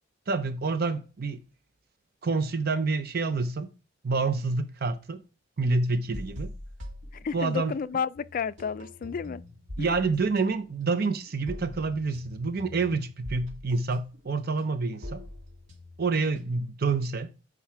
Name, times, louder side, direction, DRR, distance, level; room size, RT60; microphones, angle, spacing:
voice 1, 0.3-1.4 2.2-3.7 4.0-5.2 5.6-6.5 7.3-7.7 9.8-15.2 16.0-17.3, right 4 dB, 55° right, 0.6 m, -28 dB
sound 1, 6.1-7.8 8.1-16.8, left 1 dB, 90° right, 2.0 m, -43 dB
voice 2, 7.1-9.4 9.8-10.0, left 6 dB, 45° left, 0.4 m, -32 dB
7.5 x 4.7 x 4.5 m
head